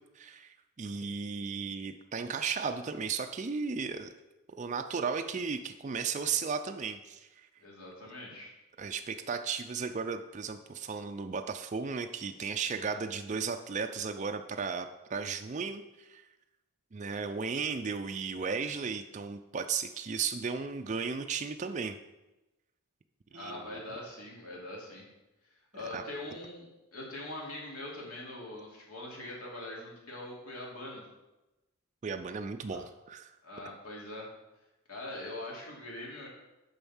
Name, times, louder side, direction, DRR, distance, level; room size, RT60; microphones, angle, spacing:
voice 1, 0.2-4.1 4.6-7.3 8.8-16.2 16.9-22.0 23.3-23.8 25.9-26.0 32.0-33.3, right 5 dB, 35° right, 6 dB, 0.4 m, -35 dB
voice 2, 7.6-8.5 23.3-25.0 25.7-26.6 26.9-31.0 32.7-32.8 33.4-34.3 34.9-36.3, left 1 dB, 80° left, -3 dB, 2.7 m, -42 dB
7.0 x 5.4 x 7.1 m, 1.0 s
head